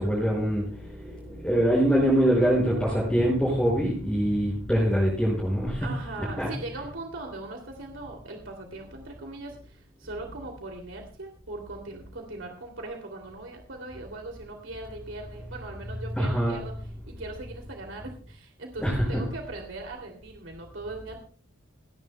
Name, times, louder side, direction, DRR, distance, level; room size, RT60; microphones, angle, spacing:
voice 1, 0.0-5.9 6.4-6.5 16.2-16.5 18.8-19.2, equal, 5° left, -6 dB, 5.4 m, -24 dB
voice 2, 5.8-16.7 17.1-21.2, right 2 dB, 75° right, 1 dB, 2.7 m, -40 dB
30.0 x 10.5 x 2.2 m, 0.40 s
head